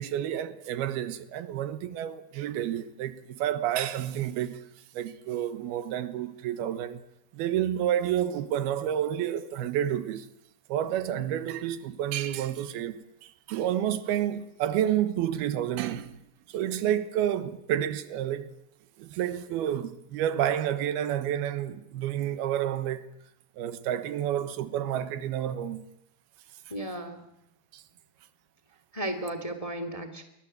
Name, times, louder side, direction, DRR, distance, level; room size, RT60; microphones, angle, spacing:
voice 1, 0.0-4.6 4.9-7.0 7.3-10.3 10.7-16.2 16.5-18.5 19.0-23.0 23.6-25.8 27.7-27.8, right 11 dB, 85° right, 3.2 m, -30 dB
voice 2, 26.7-27.2 28.9-30.2, right 1 dB, 10° left, 2.2 m, -34 dB
28.5 x 22.5 x 8.0 m
omnidirectional pair, 4.4 m